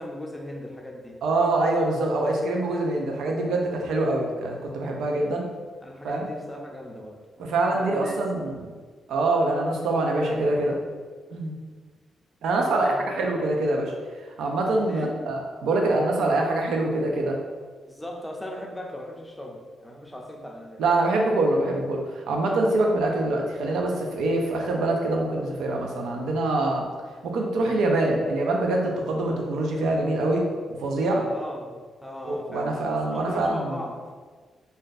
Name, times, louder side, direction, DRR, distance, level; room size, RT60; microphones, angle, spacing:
voice 1, 0.0-1.2 5.8-7.2 7.7-8.2 12.7-13.0 14.9-15.2 17.9-20.8 31.1-31.7 32.0-32.8 33.1-34.1, left 1 dB, 5° left, 0 dB, 0.4 m, -38 dB
voice 2, 1.2-5.5 6.0-6.3 7.4-8.6 9.1-10.8 11.3-11.6 12.4-13.9 14.2-17.4 20.8-26.9 27.2-30.4 30.8-31.2 32.2-33.8, right 2 dB, 90° right, 1 dB, 0.5 m, -24 dB
2.6 x 2.2 x 3.9 m, 1.5 s
cardioid pair, 130°, 0 cm